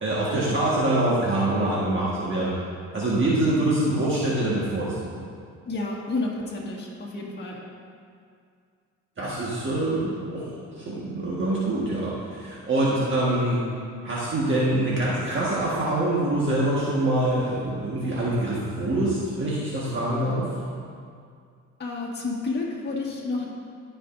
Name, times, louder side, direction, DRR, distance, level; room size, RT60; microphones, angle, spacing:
voice 1, 0.0-2.5 2.9-5.1 9.2-10.4 10.8-12.1 12.4-13.6 14.0-20.5, right 1 dB, 40° right, -7 dB, 1.5 m, -25 dB
voice 2, 5.6-7.6 21.8-23.5, left 3 dB, 35° left, -4 dB, 1.6 m, -30 dB
15.0 x 5.2 x 2.6 m, 2.3 s
cardioid pair, 90°, 30 cm